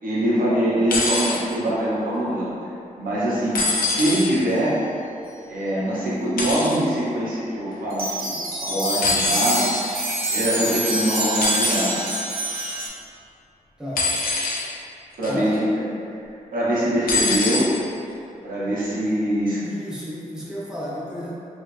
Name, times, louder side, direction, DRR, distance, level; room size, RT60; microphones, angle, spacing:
voice 1, 0.0-2.5 3.0-4.8 5.5-8.3 8.6-9.7 10.3-12.1 15.2-15.5 16.5-17.7 18.4-19.6, right 1 dB, 70° right, -8 dB, 1.1 m, -23 dB
sound 1, 0.9-1.4 3.5-4.3 6.4-6.8 9.0-9.7 11.4-11.9 14.0-14.7 15.2-15.5 17.1-17.7 18.7-18.8, left 2 dB, 80° left, 0.6 m, -23 dB
sound 2, 7.9-12.9, right 1 dB, 85° right, 0.7 m, -26 dB
voice 2, 13.8-14.2 15.3-15.6 19.6-21.3, equal, 5° right, -7 dB, 0.7 m, -32 dB
3.3 x 2.6 x 3.3 m, 2.6 s
cardioid pair, 90°, 15 cm